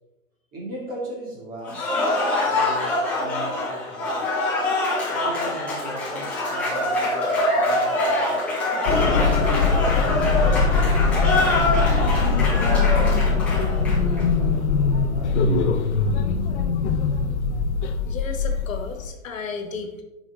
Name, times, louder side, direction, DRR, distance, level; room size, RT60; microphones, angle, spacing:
voice 1, 0.5-1.9 2.4-4.2 5.1-8.4 8.9-10.0 11.1-14.6 15.0-15.9, right 1 dB, 20° right, -3 dB, 2.4 m, -37 dB
Cheering / Applause, 1.6-14.2, left 1 dB, 5° left, 0.4 m, -24 dB
sound 1, 8.9-19.1, left 4 dB, 55° left, 0.9 m, -21 dB
voice 2, 18.0-20.0, left 5 dB, 70° left, 5 dB, 1.4 m, -33 dB
8.9 x 5.1 x 3.6 m, 1.0 s
hypercardioid pair, 155°, 41 cm